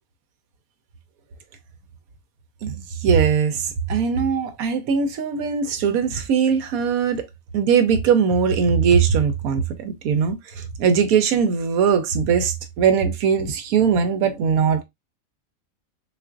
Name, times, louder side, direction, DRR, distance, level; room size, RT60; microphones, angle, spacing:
voice 1, 2.6-7.3 7.5-14.8, right 6 dB, 85° right, 1.1 m, -20 dB
3.7 x 2.5 x 2.4 m
omnidirectional pair, 1.5 m